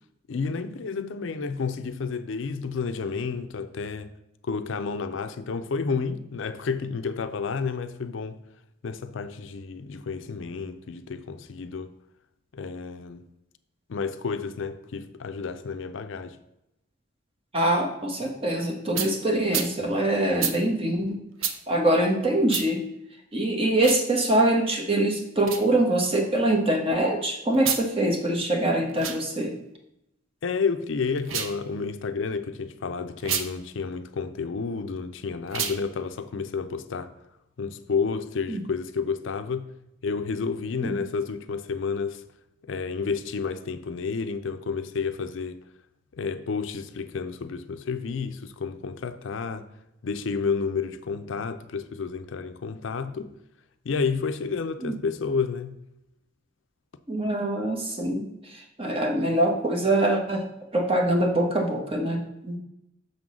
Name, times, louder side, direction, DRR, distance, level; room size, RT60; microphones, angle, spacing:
voice 1, 0.3-4.1 4.4-8.4 8.8-11.9 12.5-13.2 13.9-16.4 30.4-37.1 37.6-39.7 40.0-42.2 42.6-45.6 46.1-49.7 50.0-53.3 53.8-55.8, left 5 dB, 65° left, 0.5 m, -30 dB
voice 2, 17.5-21.2 21.7-22.8 23.3-29.5 38.5-38.6 40.8-41.0 54.8-55.0 57.1-60.4 60.7-62.6, right 1 dB, 30° right, 1.1 m, -24 dB
sound 1, 18.9-19.1 19.5-19.7 20.4-20.6 21.4-21.6 22.5-22.7 23.7-24.0 25.4-25.6 27.5-27.8 28.9-29.2 31.2-31.6 33.2-33.5 35.5-35.8, right 7 dB, 80° right, 0.7 m, -29 dB
6.5 x 3.8 x 6.1 m
head